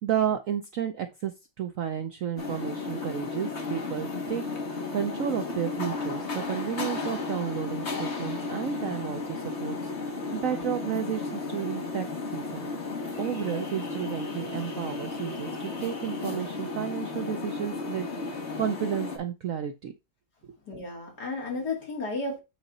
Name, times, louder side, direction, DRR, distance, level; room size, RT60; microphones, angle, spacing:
voice 1, 0.0-12.0 12.3-12.7 13.2-19.9 20.4-20.5, right 9 dB, 65° right, 0.8 m, -32 dB
sound 1, 2.4-19.2, left 3 dB, 40° left, 1.6 m, -34 dB
voice 2, 12.7-13.0 13.5-13.6 20.7-22.4, left 3 dB, 60° left, 2.9 m, -34 dB
8.0 x 3.9 x 4.1 m
omnidirectional pair, 2.0 m